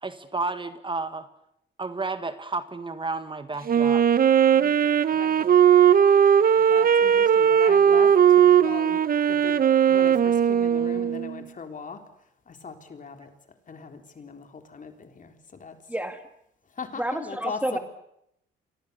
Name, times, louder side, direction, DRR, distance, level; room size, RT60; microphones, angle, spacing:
voice 1, 0.0-1.3 1.8-4.2, right 3 dB, 25° right, 10 dB, 1.7 m, -32 dB
Wind instrument woodwind instrument, 3.7-11.4, right 8 dB, 45° right, 1.0 m, -18 dB
voice 2, 4.5-5.5 6.5-9.0 9.3-9.6 9.9-12.0 12.5-13.3 13.7-15.8 16.7-17.8, left 4 dB, 40° left, 6 dB, 3.8 m, -39 dB
voice 3, 15.9-16.2 17.0-17.8, right 1 dB, 5° right, 8 dB, 1.8 m, -29 dB
29.5 x 24.0 x 6.9 m, 0.79 s
cardioid pair, 90°, 20 cm